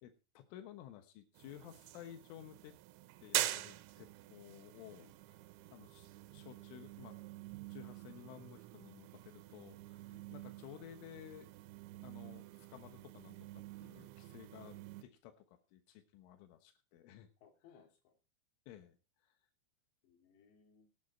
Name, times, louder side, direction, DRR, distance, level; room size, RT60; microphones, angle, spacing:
voice 1, 0.0-2.8 3.2-5.4 5.7-7.2 7.7-11.5 12.0-17.3 18.7-19.0 19.2-19.3, left 11 dB, 90° left, 7 dB, 3.8 m, -55 dB
sound 1, 1.4-15.0, right 16 dB, 80° right, 3.1 m, -45 dB
voice 2, 17.4-18.2 20.0-20.9, left 7 dB, 65° left, 4 dB, 4.8 m, -64 dB
17.5 x 9.3 x 4.3 m, 0.31 s
omnidirectional pair, 5.5 m